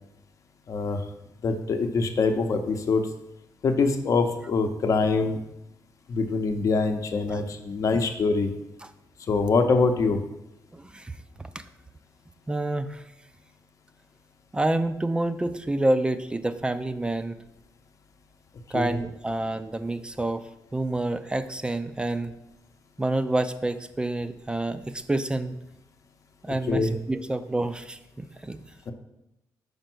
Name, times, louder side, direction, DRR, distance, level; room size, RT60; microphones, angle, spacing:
voice 1, 0.7-1.0 1.4-3.0 3.6-5.4 6.1-8.5 9.3-10.2 18.7-19.0 26.5-26.9 28.9-29.0, left 4 dB, 50° left, 6 dB, 0.7 m, -24 dB
voice 2, 10.7-11.6 12.5-13.0 14.5-17.4 18.7-22.3 23.0-25.6 26.4-28.6, right 2 dB, 15° right, 11 dB, 0.4 m, -28 dB
5.2 x 4.5 x 6.1 m, 0.89 s
cardioid pair, 110°, 7 cm